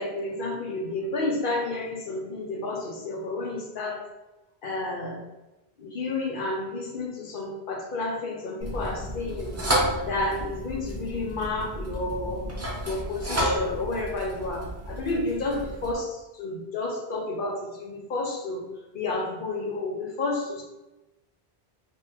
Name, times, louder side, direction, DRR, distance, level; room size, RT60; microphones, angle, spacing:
voice 1, 0.0-4.0 4.6-5.2 5.8-9.6 10.0-12.5 12.9-16.1 16.4-18.6 18.9-20.6, left 2 dB, 55° left, 0 dB, 0.9 m, -31 dB
sound 1, 8.6-15.9, equal, 20° right, 0.6 m, -31 dB
3.8 x 2.9 x 2.7 m, 1.0 s
omnidirectional pair, 1.1 m